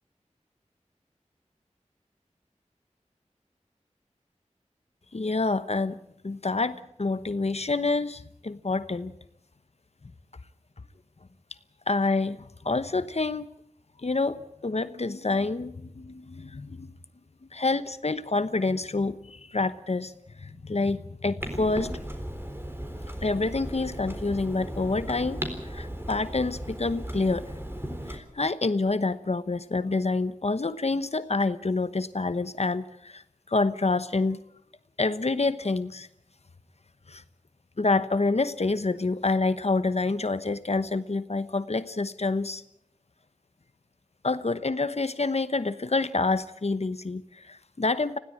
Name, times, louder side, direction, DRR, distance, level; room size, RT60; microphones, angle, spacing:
voice 1, 5.1-6.0 6.2-9.1 11.9-13.5 14.0-16.9 17.5-20.1 20.4-21.9 23.2-27.5 28.1-34.4 35.0-36.1 37.1-37.2 37.8-42.6 44.2-48.2, left 3 dB, 55° left, 13 dB, 1.0 m, -27 dB
Clock, 21.4-28.2, equal, 20° right, 4.0 m, -36 dB
20.5 x 16.5 x 8.8 m, 0.75 s
wide cardioid pair, 55°, 13 cm